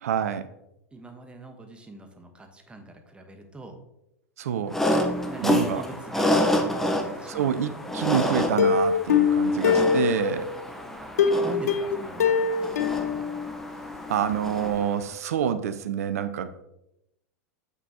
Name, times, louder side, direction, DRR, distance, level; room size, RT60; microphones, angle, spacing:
voice 1, 0.0-0.5 4.4-4.8 5.4-5.9 7.3-10.5 14.1-16.5, right 9 dB, 70° right, 11 dB, 0.5 m, -27 dB
voice 2, 0.9-3.8 5.3-7.8 10.6-12.3 12.6-13.3, right 2 dB, 10° right, 5 dB, 1.1 m, -43 dB
sound 1, 4.7-15.0, left 1 dB, 5° left, 0.8 m, -29 dB
Plucked string instrument, 8.6-10.6 11.2-14.0 14.3-14.4 14.7-14.8, left 6 dB, 75° left, 0.5 m, -23 dB
6.9 x 6.0 x 2.8 m, 0.84 s
hypercardioid pair, 95°, 8 cm